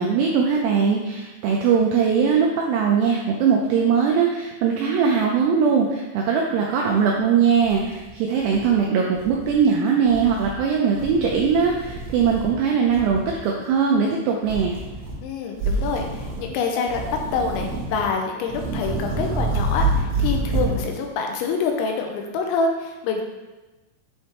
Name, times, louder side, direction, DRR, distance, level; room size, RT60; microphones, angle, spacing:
voice 1, 0.0-14.8, right 6 dB, 85° right, -1 dB, 2.4 m, -20 dB
sound 1, 7.2-7.3 7.6-8.7 9.1-9.6 10.0-10.6 10.9-12.6 12.9-13.4 14.4-15.2 15.5-16.5 16.9-18.1 18.4-20.8, right 2 dB, 65° right, 2.6 m, -27 dB
voice 2, 15.2-23.2, left 4 dB, 85° left, 2 dB, 2.9 m, -26 dB
7.9 x 3.4 x 4.2 m, 1.1 s
omnidirectional pair, 5.5 m